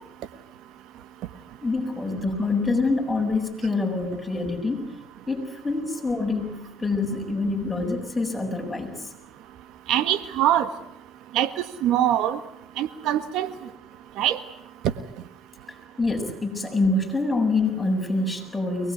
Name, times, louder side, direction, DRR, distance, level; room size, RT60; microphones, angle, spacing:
voice 1, 1.6-4.9 5.3-9.1 16.0-18.9, left 3 dB, 10° left, 1 dB, 7.6 m, -26 dB
voice 2, 9.9-10.7 11.3-11.5 11.8-12.4 12.8-13.5 14.2-14.4, right 12 dB, 70° right, 12 dB, 1.5 m, -22 dB
24.0 x 20.5 x 9.5 m, 0.77 s
supercardioid pair, 75°, 0 cm